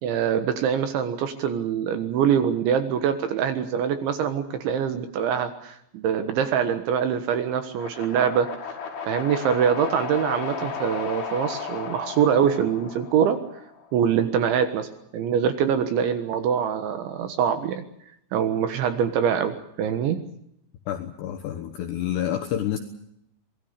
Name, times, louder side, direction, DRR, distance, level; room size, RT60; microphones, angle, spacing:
voice 1, 0.0-8.5 9.1-13.4 13.9-14.9 15.1-17.8 18.3-20.2, right 8 dB, 70° right, 9 dB, 3.5 m, -24 dB
sound 1, 7.7-13.9, left 5 dB, 50° left, 7.5 m, -34 dB
voice 2, 20.9-22.8, left 11 dB, 70° left, 6 dB, 3.0 m, -28 dB
26.0 x 20.5 x 6.7 m, 0.75 s
omnidirectional pair, 6.0 m